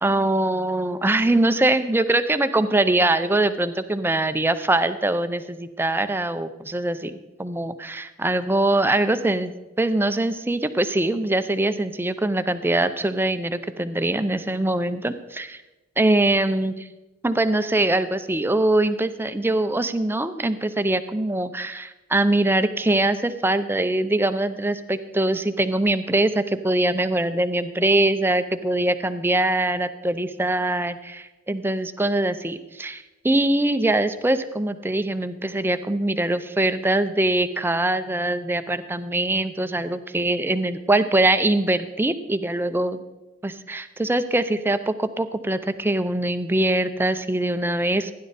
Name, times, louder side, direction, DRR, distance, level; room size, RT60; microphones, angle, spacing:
voice 1, 0.0-15.6 16.0-16.7 17.2-43.0 43.4-48.1, right 2 dB, 10° right, 11 dB, 0.5 m, -23 dB
15.5 x 10.5 x 4.1 m, 1.1 s
head